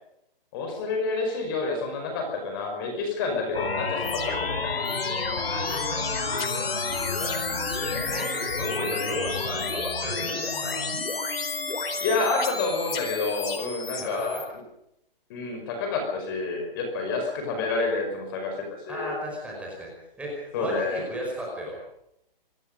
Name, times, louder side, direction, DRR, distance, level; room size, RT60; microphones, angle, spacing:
voice 1, 0.5-4.8 12.0-14.4 15.3-19.1 20.5-21.0, left 3 dB, 25° left, 3 dB, 5.3 m, -29 dB
sound 1, 3.5-14.4, left 4 dB, 85° left, 4.6 m, -30 dB
voice 2, 5.4-10.8 14.0-14.4 18.9-19.9 20.2-21.8, equal, 5° right, -2 dB, 5.2 m, -36 dB
25.5 x 20.5 x 5.4 m, 0.78 s
hypercardioid pair, 165°, 29 cm